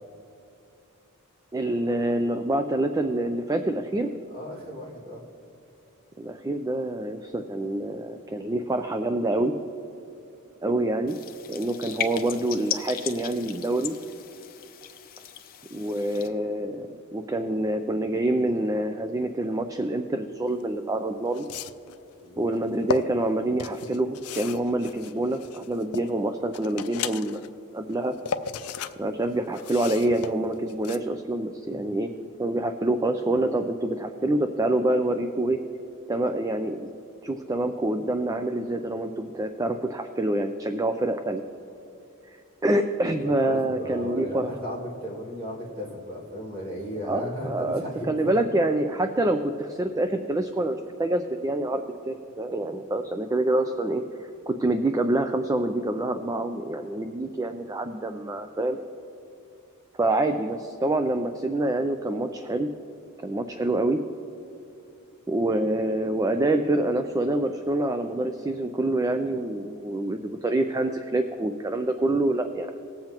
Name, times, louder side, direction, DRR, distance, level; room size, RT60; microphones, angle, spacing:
voice 1, 1.5-4.1 6.2-9.5 10.6-11.2 11.5-14.0 15.7-21.5 22.4-27.4 27.7-28.1 29.0-32.1 32.4-35.6 36.1-36.9 37.2-41.4 42.6-44.5 47.0-54.0 54.5-58.8 60.0-62.7 63.2-64.0 65.3-72.7, right 1 dB, 15° right, 7 dB, 0.3 m, -26 dB
voice 2, 4.3-5.2 22.2-22.5 31.7-32.0 43.2-48.4, equal, 45° right, -5 dB, 2.4 m, -36 dB
sound 1, 11.1-16.3, left 9 dB, 40° left, 0.6 m, -37 dB
sound 2, 20.6-20.7 21.3-22.0 22.6-23.0 23.6-26.1 26.5-27.5 27.9-28.9 29.2-31.0, left 7 dB, 85° left, 0.4 m, -34 dB
20.0 x 7.6 x 2.9 m, 2.7 s
head